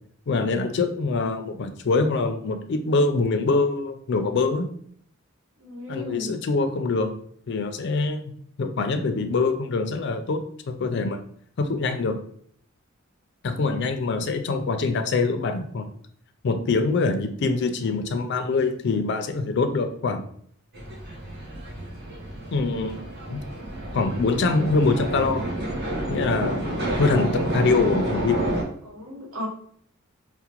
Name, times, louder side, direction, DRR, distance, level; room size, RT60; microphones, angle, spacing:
voice 1, 0.3-4.7 5.9-7.1 7.5-8.3 8.6-11.2 11.6-12.2 13.4-15.9 16.4-20.3 22.5-23.0 23.3-23.4 23.9-25.5 26.1-28.5, left 3 dB, 55° left, 8 dB, 0.4 m, -24 dB
voice 2, 5.6-6.3 28.8-29.5, left 1 dB, 80° right, -2 dB, 1.0 m, -35 dB
sound 1, 20.7-28.6, right 1 dB, 50° right, 0.9 m, -29 dB
4.8 x 2.1 x 2.9 m, 0.63 s
head